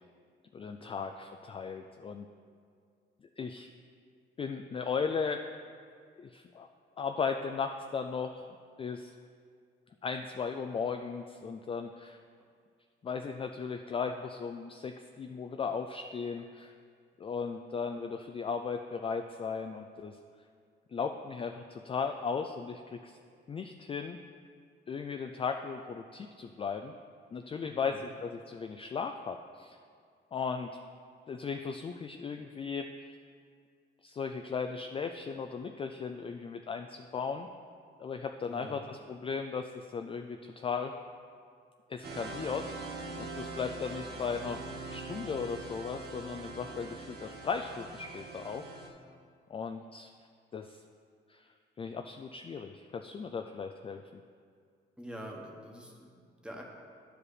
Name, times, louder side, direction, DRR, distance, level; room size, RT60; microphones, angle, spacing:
voice 1, 0.5-2.3 3.4-3.7 4.4-5.4 6.2-6.7 7.0-8.5 8.8-9.1 10.0-12.2 13.0-16.8 17.2-20.2 20.9-23.2 23.5-24.2 24.9-26.9 27.3-29.8 30.3-30.7 31.3-32.9 34.0-37.5 38.0-40.9 41.9-42.7 43.2-44.6 44.9-48.7 49.5-50.1 50.5-50.8 51.3-51.5 51.8-54.2, left 5 dB, 30° left, 6 dB, 0.3 m, -36 dB
voice 2, 27.6-28.0 38.5-38.9 55.0-56.6, equal, 5° right, 0 dB, 1.3 m, -46 dB
sound 1, 42.0-48.9, right 3 dB, 50° right, 1.2 m, -43 dB
10.0 x 4.9 x 4.9 m, 2.1 s
cardioid pair, 90°, 20 cm